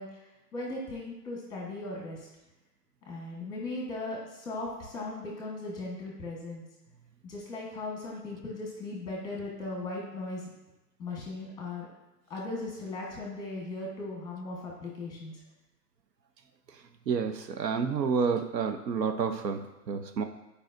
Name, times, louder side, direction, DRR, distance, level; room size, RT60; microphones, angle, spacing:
voice 1, 0.0-2.3 3.1-6.6 7.2-10.5 11.0-11.9 12.3-15.3, left 2 dB, 10° left, -2 dB, 1.1 m, -38 dB
voice 2, 17.1-20.2, right 6 dB, 80° right, 7 dB, 0.9 m, -29 dB
9.3 x 4.9 x 2.5 m, 1.0 s
hypercardioid pair, 155°, 49 cm